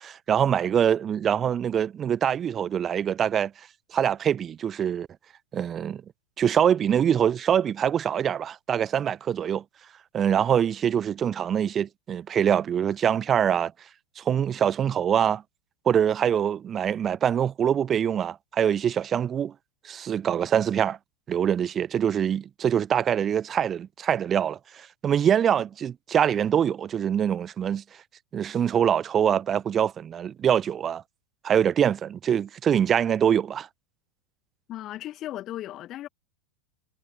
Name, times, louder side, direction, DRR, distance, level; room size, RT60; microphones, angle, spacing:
voice 1, 0.0-3.5 3.9-5.1 5.5-6.0 6.4-9.6 10.1-13.7 14.2-15.4 15.9-19.5 19.8-21.0 21.3-27.8 28.3-31.0 31.4-33.7, right 9 dB, 25° right, 0.3 m, -24 dB
voice 2, 34.7-36.1, left 13 dB, 35° left, 1.7 m, -36 dB
figure-of-eight pair, 90°, 0 cm